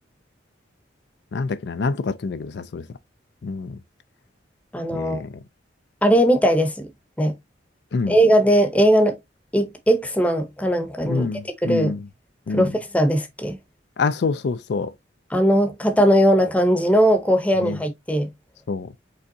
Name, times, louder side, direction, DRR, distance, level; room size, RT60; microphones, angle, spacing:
voice 1, 1.3-2.8 3.4-3.8 4.9-5.3 7.9-8.2 11.0-12.0 12.5-12.7 14.0-14.9 17.6-17.8 18.7-18.9, left 4 dB, 65° left, 0.4 m, -26 dB
voice 2, 4.7-5.2 6.0-6.8 7.2-7.3 8.1-9.2 9.5-11.9 12.5-13.6 15.3-18.3, equal, 10° left, 0.8 m, -19 dB
5.3 x 3.5 x 2.7 m
head